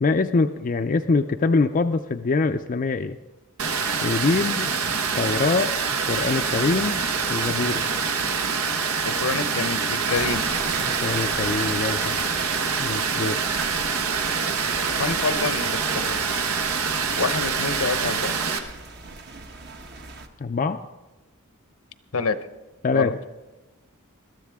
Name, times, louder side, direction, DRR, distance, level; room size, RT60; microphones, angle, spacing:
voice 1, 0.0-3.2 4.0-4.7 5.2-5.7 6.1-7.0 7.3-7.8 11.0-12.4 12.8-13.4 20.4-20.8 22.8-23.1, left 3 dB, 40° left, 6 dB, 0.4 m, -24 dB
Water, 3.6-18.6, right 5 dB, 90° right, 1.2 m, -25 dB
voice 2, 9.0-10.4 15.0-16.2 17.2-18.4 22.1-22.4 22.9-23.1, left 4 dB, 80° left, 11 dB, 0.8 m, -27 dB
sound 1, 10.1-20.3, right 3 dB, 50° right, 1.1 m, -36 dB
21.0 x 13.5 x 3.5 m, 1.1 s
head